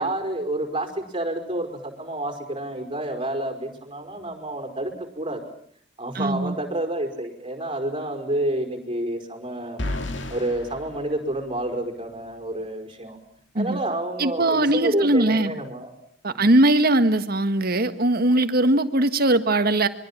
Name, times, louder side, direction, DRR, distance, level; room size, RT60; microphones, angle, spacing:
voice 1, 0.0-5.4 6.0-9.8 10.3-13.2 13.5-15.9 16.3-16.5, right 1 dB, 30° right, 4 dB, 5.0 m, -29 dB
voice 2, 6.1-6.6 13.5-13.8 14.2-15.5 16.2-19.9, right 1 dB, 55° right, 9 dB, 1.6 m, -20 dB
sound 1, 9.8-11.9, left 1 dB, 70° left, 2.4 m, -33 dB
25.5 x 23.5 x 7.3 m, 0.63 s
head